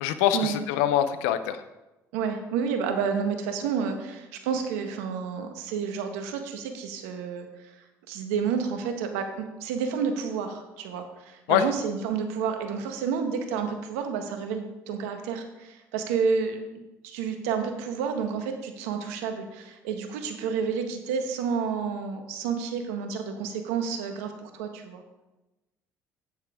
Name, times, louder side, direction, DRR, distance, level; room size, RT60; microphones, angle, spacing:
voice 1, 0.0-1.6 11.5-11.6, left 11 dB, 85° left, 11 dB, 0.6 m, -24 dB
voice 2, 2.1-7.7 8.1-16.6 17.0-25.0, right 6 dB, 85° right, 6 dB, 1.2 m, -30 dB
9.4 x 8.8 x 3.6 m, 1.0 s
hypercardioid pair, 65°, 8 cm